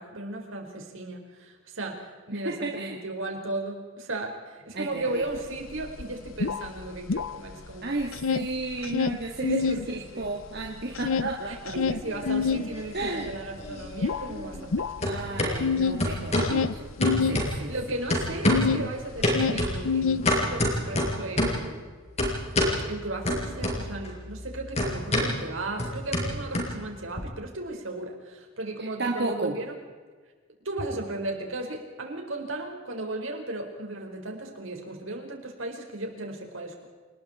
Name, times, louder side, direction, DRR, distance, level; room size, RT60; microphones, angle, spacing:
voice 1, 0.0-7.9 9.4-10.3 11.5-15.8 17.5-21.9 22.9-29.7 30.6-36.8, right 2 dB, 75° right, 2 dB, 5.0 m, -36 dB
voice 2, 2.3-3.0 4.7-5.2 7.8-12.0 12.9-13.3 15.0-16.9 17.3-17.7 28.8-29.5, right 2 dB, 55° right, 0 dB, 2.3 m, -33 dB
sound 1, 5.4-5.5 5.7-7.7 8.0-9.9 10.2-18.9 19.2-20.7, left 5 dB, 80° left, 0.7 m, -28 dB
sound 2, 11.9-12.8 13.1-14.7 15.0-15.5 16.0-16.6 17.0-17.8 18.1-18.8 19.2-21.7 22.2-22.8 23.3-24.1 24.3-27.2, left 1 dB, 35° left, 5.9 m, -27 dB
28.5 x 20.5 x 4.5 m, 1.4 s
head